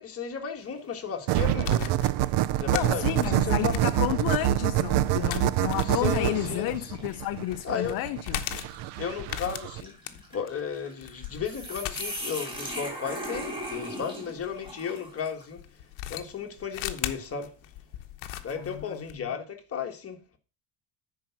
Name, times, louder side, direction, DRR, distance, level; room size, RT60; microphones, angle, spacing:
voice 1, 0.0-1.9 2.6-3.7 5.8-6.9 7.6-8.0 8.5-8.6 9.0-15.6 16.1-17.5 18.4-20.4, left 7 dB, 30° left, 1.6 m, -34 dB
sound 1, 0.6-1.1 1.6-1.7 2.7-2.9 3.5-15.5, equal, 10° right, 3.2 m, -41 dB
sound 2, 1.3-9.8, right 14 dB, 60° right, 0.6 m, -26 dB
sound 3, 1.5-14.7 15.6-19.2, left 14 dB, 85° left, 1.1 m, -39 dB
voice 2, 2.7-8.4 18.7-19.0, left 16 dB, 50° left, 0.5 m, -31 dB
10.0 x 4.8 x 5.8 m
cardioid pair, 140°, 49 cm